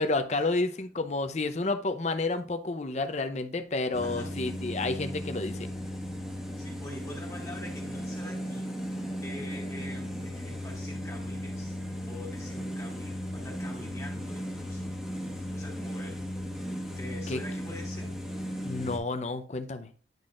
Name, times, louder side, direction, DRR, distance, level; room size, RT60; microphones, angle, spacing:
voice 1, 0.0-5.7 17.3-17.4 18.6-19.9, left 2 dB, 40° left, 8 dB, 0.6 m, -30 dB
sound 1, 3.9-19.0, equal, ahead, 1.3 m, -36 dB
voice 2, 4.0-4.4 6.5-11.8 12.1-14.9 15.4-16.3 17.0-18.2, left 1 dB, 20° left, -2 dB, 1.6 m, -45 dB
10.5 x 4.0 x 2.5 m, 0.38 s
head